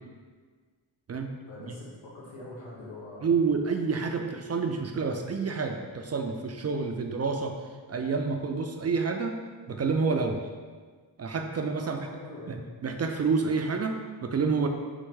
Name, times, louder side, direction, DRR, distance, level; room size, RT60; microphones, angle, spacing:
voice 1, 1.5-3.3 11.8-12.7, left 1 dB, 90° left, -5 dB, 1.2 m, -43 dB
voice 2, 3.2-7.6 7.9-9.4 9.7-10.4 11.2-12.0 12.5-13.9 14.2-14.7, right 4 dB, 35° right, 4 dB, 0.4 m, -28 dB
4.5 x 2.1 x 4.6 m, 1.5 s
cardioid pair, 60°, 46 cm